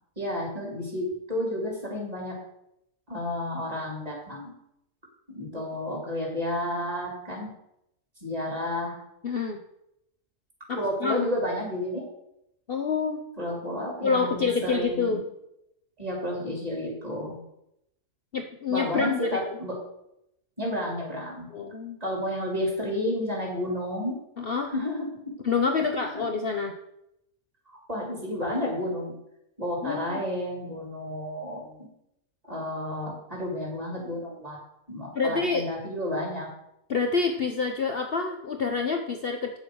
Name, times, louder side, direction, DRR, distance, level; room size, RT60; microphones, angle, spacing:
voice 1, 0.2-2.3 3.1-4.5 5.3-7.5 8.2-9.0 10.8-12.1 13.4-15.2 16.0-17.3 18.7-19.7 20.6-21.5 22.0-24.1 24.7-25.0 26.1-26.2 27.9-29.1 29.6-31.8 32.5-34.6 34.9-36.5, left 1 dB, 25° right, -2 dB, 4.0 m, -31 dB
voice 2, 9.2-9.6 10.7-11.3 12.7-13.2 14.0-15.2 18.3-19.4 21.5-22.0 24.4-24.7 25.4-26.8 29.8-30.2 35.1-35.7 36.9-39.6, left 5 dB, 45° left, 4 dB, 1.0 m, -27 dB
9.4 x 7.1 x 6.4 m, 0.80 s
omnidirectional pair, 1.5 m